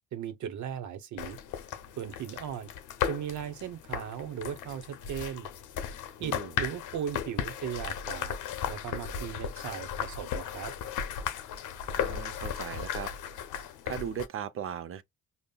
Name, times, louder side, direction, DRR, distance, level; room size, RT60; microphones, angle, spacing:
voice 1, 0.1-1.4 2.0-2.7 3.0-5.5 6.2-8.4 8.7-10.7, right 9 dB, 75° right, 0.8 m, -37 dB
sound 1, 1.2-14.3, left 8 dB, 85° left, 0.7 m, -36 dB
voice 2, 6.2-6.5 11.9-13.1 13.9-15.0, right 8 dB, 45° right, 0.5 m, -37 dB
5.2 x 2.0 x 2.2 m
cardioid pair, 90°, 30 cm